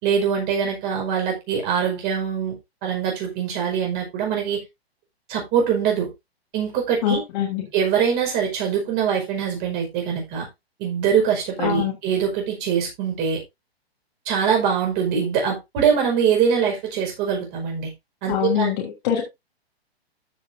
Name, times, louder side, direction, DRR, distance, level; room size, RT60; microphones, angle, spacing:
voice 1, 0.0-2.6 2.8-4.6 5.3-6.1 6.5-7.2 7.7-10.5 10.8-13.4 14.3-17.9 18.2-18.7, right 7 dB, 30° right, 5.3 m, -23 dB
voice 2, 7.0-7.7 11.6-12.0 18.3-19.2, left 9 dB, 45° left, 3.2 m, -23 dB
14.5 x 6.6 x 2.7 m
hypercardioid pair, 135°, 32 cm